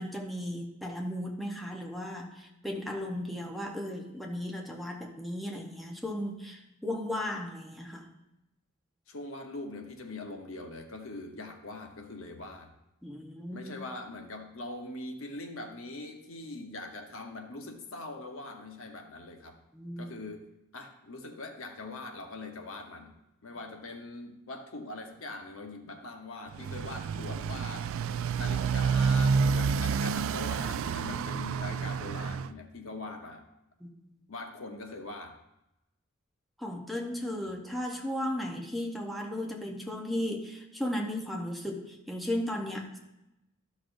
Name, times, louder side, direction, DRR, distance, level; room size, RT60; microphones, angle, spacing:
voice 1, 0.0-8.1 13.0-13.7 19.7-20.1 33.8-33.9 36.6-43.0, left 1 dB, ahead, -1 dB, 0.8 m, -35 dB
voice 2, 9.1-12.7 13.5-19.6 20.0-20.5 20.7-23.1 23.4-27.9 28.3-33.4 34.3-35.4, left 2 dB, 75° left, 4 dB, 1.0 m, -42 dB
Motorcycle, 26.5-32.5, right 5 dB, 75° right, 0.3 m, -29 dB
13.0 x 6.3 x 2.6 m, 0.91 s
head